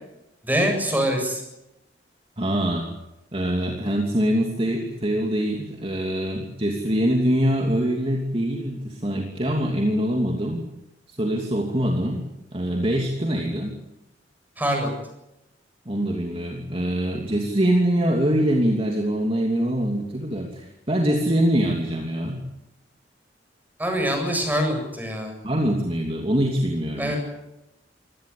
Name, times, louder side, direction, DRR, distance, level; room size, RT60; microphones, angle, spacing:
voice 1, 0.4-1.4 14.6-14.9 23.8-25.3 27.0-27.2, equal, 10° right, 3 dB, 7.9 m, -24 dB
voice 2, 2.4-2.9 3.3-10.6 11.1-12.2 12.5-13.7 15.8-22.4 25.4-27.1, equal, 30° right, 1 dB, 2.9 m, -24 dB
24.5 x 18.5 x 8.6 m, 0.89 s
head